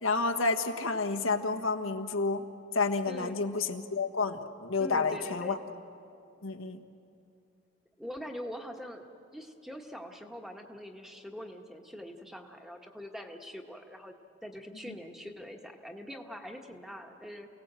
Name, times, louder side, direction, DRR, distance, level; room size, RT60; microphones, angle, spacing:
voice 1, 0.0-2.4 2.7-5.6 6.4-6.8 14.9-15.0, left 3 dB, 90° left, 5 dB, 1.4 m, -30 dB
voice 2, 3.1-3.5 4.8-5.6 8.0-9.0 9.3-14.1 14.4-17.5, equal, ahead, 3 dB, 1.4 m, -43 dB
29.0 x 18.0 x 7.5 m, 2.5 s
head